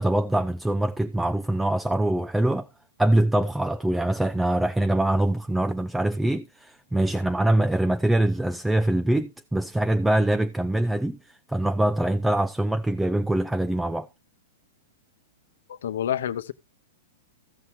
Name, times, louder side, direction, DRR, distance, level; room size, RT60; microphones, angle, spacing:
voice 1, 0.0-2.7 3.0-14.1, right 1 dB, 5° right, 0.4 m, -24 dB
voice 2, 15.7-16.5, left 10 dB, 75° left, 0.7 m, -28 dB
15.5 x 5.8 x 3.1 m
hypercardioid pair, 140°, 0 cm